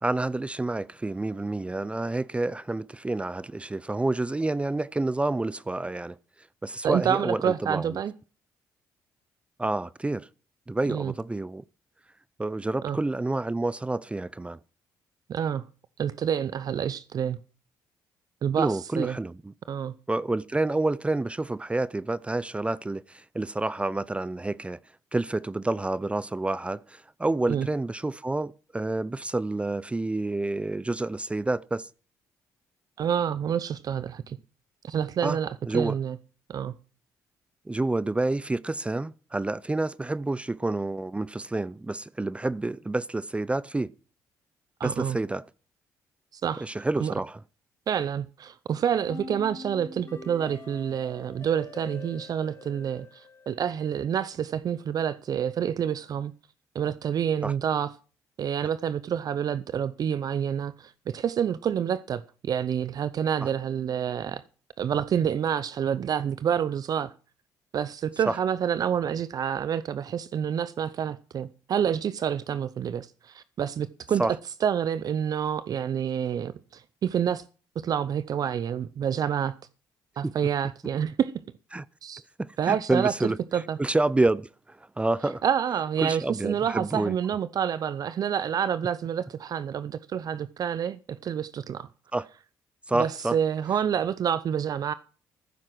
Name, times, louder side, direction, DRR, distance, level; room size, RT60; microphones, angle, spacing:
voice 1, 0.0-6.2 6.6-8.0 9.6-10.3 10.7-11.6 12.4-14.6 18.6-19.5 20.1-24.8 25.1-31.9 35.2-35.4 35.7-36.0 37.7-43.9 44.8-45.4 46.6-47.4 57.4-57.5 58.6-58.7 63.4-63.5 68.3-68.4 74.2-74.3 80.2-80.3 81.7-81.8 82.4-83.4 83.8-85.4 86.0-87.1 92.1-92.3 92.9-93.4, right 2 dB, 15° right, 0.5 m, -28 dB
voice 2, 6.8-8.1 10.9-11.1 12.8-13.0 15.3-15.6 16.0-17.4 18.4-19.1 19.7-19.9 27.5-27.7 33.0-34.4 34.8-36.2 36.5-36.7 44.8-45.2 46.3-46.7 47.0-47.1 47.9-56.3 56.7-57.9 58.4-64.4 64.8-67.1 67.7-74.3 74.6-77.4 77.8-79.5 80.2-81.3 82.0-82.2 82.6-83.8 85.4-91.9 92.9-94.9, right 8 dB, 55° right, 0.6 m, -28 dB
sound 1, 49.1-54.1, left 2 dB, 40° left, 4.5 m, -44 dB
14.5 x 7.6 x 6.0 m
supercardioid pair, 60°, 8 cm